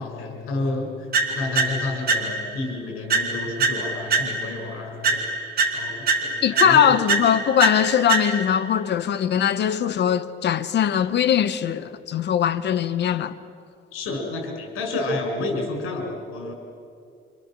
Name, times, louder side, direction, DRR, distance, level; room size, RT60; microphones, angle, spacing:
voice 1, 0.0-5.3 5.7-6.9 13.9-16.5, left 2 dB, 75° left, 6.0 m, -30 dB
sound 1, 1.1-2.6 3.1-4.6 5.0-8.6, right 3 dB, 45° right, 3.9 m, -25 dB
voice 2, 6.4-13.4, left 9 dB, 55° left, 1.0 m, -21 dB
28.5 x 27.0 x 7.6 m
cardioid pair, 120°, 21 cm